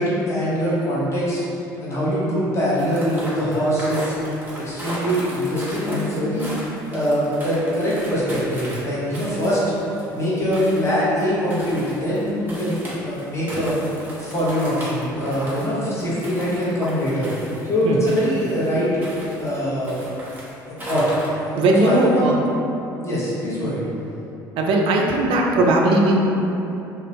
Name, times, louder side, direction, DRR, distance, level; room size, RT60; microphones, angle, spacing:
voice 1, 0.0-1.4 1.8-4.1 4.5-6.5 6.9-13.8 14.2-17.3 17.7-18.9 19.4-20.0 20.6-21.1 21.8-22.3 23.0-23.8, equal, 25° left, -9 dB, 1.0 m, -23 dB
sound 1, 2.8-19.6 19.8-21.3, equal, 15° right, 1.1 m, -35 dB
voice 2, 21.6-22.4 24.6-26.2, right 2 dB, 55° right, 0 dB, 0.4 m, -18 dB
2.5 x 2.3 x 3.1 m, 2.9 s
figure-of-eight pair, 55°, 11 cm